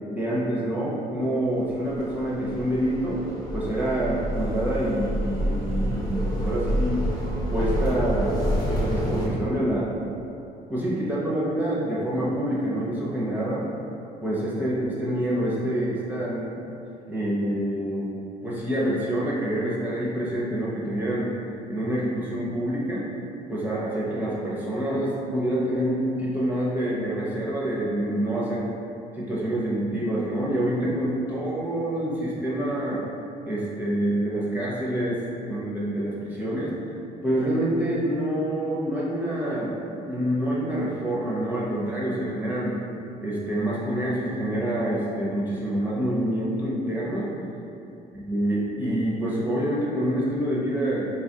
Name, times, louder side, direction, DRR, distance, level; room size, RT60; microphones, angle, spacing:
voice 1, 0.1-3.2 3.5-7.1 7.5-9.9 10.7-13.7 14.2-16.5 17.1-18.1 18.4-21.3 21.7-23.1 23.5-28.7 29.1-33.0 33.5-36.7 37.2-42.8 43.2-47.3 48.3-51.1, right 1 dB, 10° right, -7 dB, 0.6 m, -27 dB
sound 1, 1.7-9.3, equal, 25° left, 0.8 m, -28 dB
4.1 x 2.3 x 2.7 m, 2.7 s
cardioid pair, 110°, 17 cm